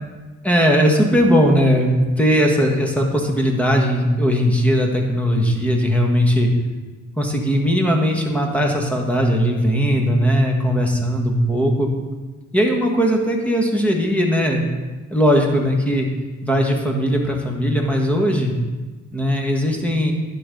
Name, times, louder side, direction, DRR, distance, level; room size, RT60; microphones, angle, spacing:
voice 1, 0.4-6.5 7.2-11.9 12.5-14.7 15.1-16.1 16.4-18.5 19.1-20.1, equal, 5° left, 0 dB, 1.6 m, -18 dB
11.5 x 3.9 x 6.9 m, 1.3 s
cardioid pair, 90°, 30 cm